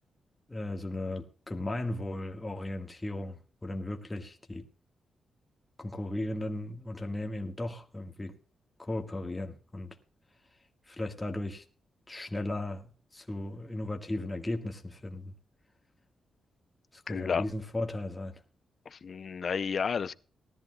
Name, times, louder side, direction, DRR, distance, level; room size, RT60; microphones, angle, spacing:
voice 1, 0.5-4.7 5.8-8.4 8.8-10.0 10.9-11.6 12.1-15.3 16.9-18.4, left 1 dB, 15° left, 1.6 m, -36 dB
voice 2, 17.1-17.4 18.9-20.1, left 6 dB, 45° left, 0.5 m, -31 dB
19.0 x 13.5 x 2.3 m
wide cardioid pair, 150°, 0 cm